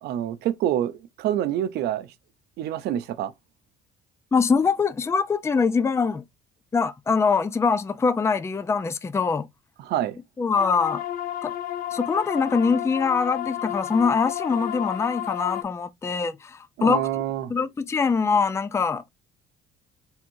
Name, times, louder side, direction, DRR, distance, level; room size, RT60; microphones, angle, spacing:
voice 1, 0.0-2.1 2.6-3.3 9.8-10.2 16.8-17.5, right 11 dB, 75° right, 0.6 m, -27 dB
voice 2, 4.3-6.2 6.7-9.5 10.4-11.0 11.4-11.5 11.9-17.1 17.5-19.0, left 5 dB, 15° left, 0.4 m, -23 dB
sound 1, 10.6-15.6, left 12 dB, 60° left, 0.7 m, -31 dB
4.4 x 3.5 x 2.6 m
cardioid pair, 110°, 17 cm